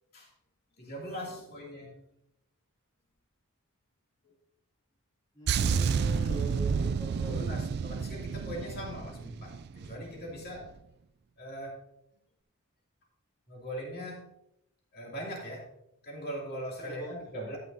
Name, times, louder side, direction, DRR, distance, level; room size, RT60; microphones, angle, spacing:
voice 1, 0.8-2.1 7.3-10.7 11.4-11.8 13.5-14.3 14.9-15.7 16.0-17.6, equal, 45° left, -1 dB, 2.5 m, -40 dB
voice 2, 5.3-7.4 16.8-17.1, right 1 dB, 20° left, -5 dB, 2.2 m, -42 dB
sound 1, 5.5-10.0 10.3-10.6, right 6 dB, 50° right, 0.3 m, -30 dB
12.5 x 8.9 x 2.7 m, 0.80 s
head